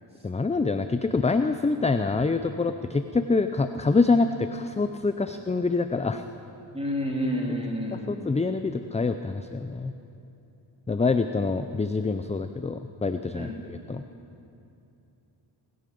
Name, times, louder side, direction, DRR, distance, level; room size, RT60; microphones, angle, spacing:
voice 1, 0.2-6.2 7.9-9.9 10.9-14.1, left 3 dB, 15° left, 9 dB, 0.5 m, -26 dB
voice 2, 6.7-8.3 13.3-13.5, equal, 15° right, -2 dB, 3.1 m, -29 dB
21.5 x 12.0 x 5.3 m, 2.8 s
cardioid pair, 75°, 47 cm